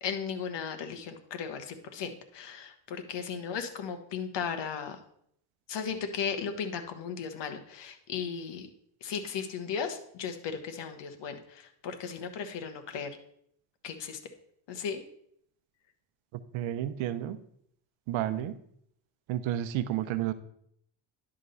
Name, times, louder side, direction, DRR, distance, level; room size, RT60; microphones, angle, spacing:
voice 1, 0.0-5.0 5.7-8.7 9.0-13.1 13.8-14.2 14.7-15.0, left 6 dB, 60° left, 7 dB, 1.4 m, -36 dB
voice 2, 16.5-17.4 18.1-18.6 19.3-20.3, right 12 dB, 75° right, 13 dB, 0.8 m, -31 dB
11.0 x 3.7 x 6.8 m, 0.70 s
supercardioid pair, 75°, 47 cm